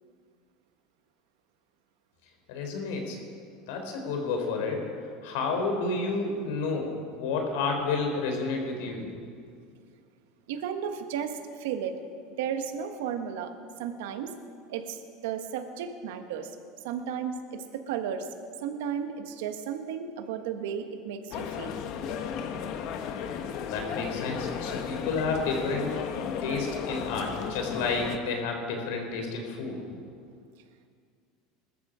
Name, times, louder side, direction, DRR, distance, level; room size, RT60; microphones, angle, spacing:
voice 1, 2.5-3.2 3.7-4.9 5.2-9.1 23.7-26.0 26.4-29.8, left 4 dB, 75° left, 3 dB, 3.6 m, -30 dB
voice 2, 10.5-12.0 12.4-13.5 13.8-14.4 14.7-16.5 16.8-18.3 18.6-21.8, right 8 dB, 80° right, 7 dB, 1.4 m, -34 dB
sound 1, 21.3-28.2, left 7 dB, 50° left, 1.1 m, -34 dB
20.5 x 13.5 x 5.0 m, 2.2 s
supercardioid pair, 150°, 0 cm